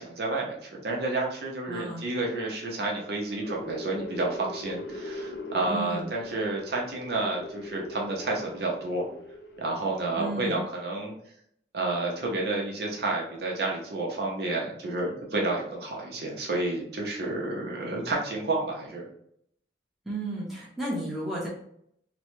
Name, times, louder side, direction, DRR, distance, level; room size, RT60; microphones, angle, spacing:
voice 1, 0.0-9.1 9.6-11.1 11.7-19.0, right 2 dB, 60° right, -1 dB, 0.7 m, -30 dB
voice 2, 1.7-2.0 5.7-6.1 10.2-10.6 20.1-21.5, right 1 dB, ahead, -6 dB, 0.8 m, -33 dB
sound 1, 3.2-10.5, left 1 dB, 70° left, 0.4 m, -41 dB
3.0 x 2.1 x 3.0 m, 0.69 s
head